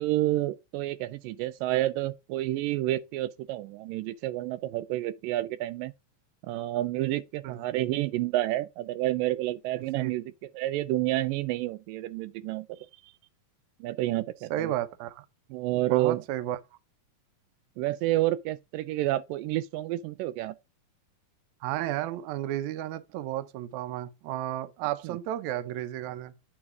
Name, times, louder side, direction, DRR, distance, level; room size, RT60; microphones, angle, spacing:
voice 1, 0.0-5.9 6.4-10.2 10.6-12.7 13.8-14.7 15.5-16.2 17.8-20.6 25.0-25.2, right 16 dB, 90° right, 2.3 m, -29 dB
voice 2, 14.5-15.3 15.7-16.6 21.6-26.3, right 13 dB, 75° right, 1.9 m, -33 dB
8.9 x 3.7 x 4.7 m
omnidirectional pair, 3.9 m